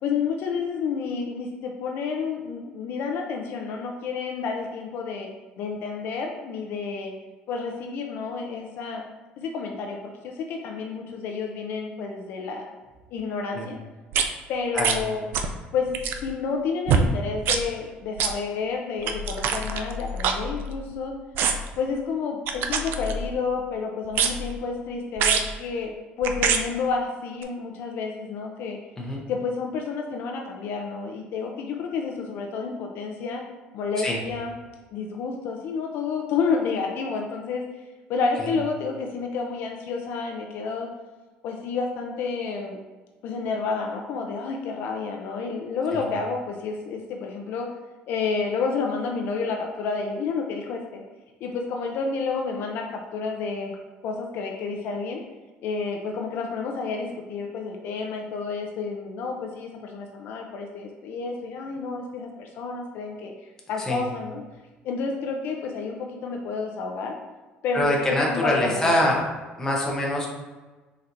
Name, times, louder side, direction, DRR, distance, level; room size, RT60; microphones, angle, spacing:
voice 1, 0.0-5.3 5.6-7.1 7.5-9.0 9.4-12.7 13.1-13.8 14.5-15.2 15.7-21.1 21.8-28.8 29.3-33.4 33.7-34.5 34.9-37.6 38.1-40.9 41.4-42.8 43.2-47.7 48.1-51.0 51.4-53.7 54.0-55.2 55.6-63.3 63.7-64.4 64.8-67.1 67.6-68.9, left 5 dB, 60° left, 1 dB, 0.5 m, -30 dB
sound 1, 14.1-14.2 14.8-15.0 15.3-15.6 15.9-16.3 16.9-17.1 17.4-17.6 18.2-18.3 19.0-20.9 21.3-21.7 22.5-23.4 24.1-24.6 25.2-25.5 26.2-26.6 27.4-27.5, right 6 dB, 60° right, 0.4 m, -25 dB
voice 2, 67.7-69.2 69.6-70.3, left 1 dB, 15° left, -2 dB, 0.8 m, -24 dB
4.3 x 3.9 x 2.6 m, 1.3 s
cardioid pair, 155°, 4 cm